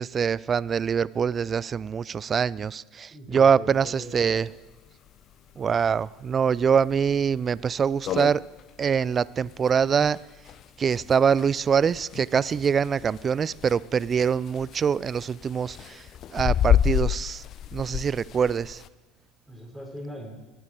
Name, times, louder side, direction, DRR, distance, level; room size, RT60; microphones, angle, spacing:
voice 1, 0.0-4.5 5.6-8.4 8.8-10.2 10.8-17.4 17.7-18.8, right 7 dB, 30° right, 0.3 m, -24 dB
voice 2, 3.1-4.5 19.5-20.4, equal, ahead, 4.8 m, -40 dB
sound 1, 3.8-3.9 4.2-4.3 4.6-4.7 5.3-5.6 6.0-6.1 6.7-6.8 7.1-7.2 7.6-7.7 7.9-18.9, left 10 dB, 45° left, 0.6 m, -29 dB
19.5 x 8.2 x 4.6 m
figure-of-eight pair, 70°, 0 cm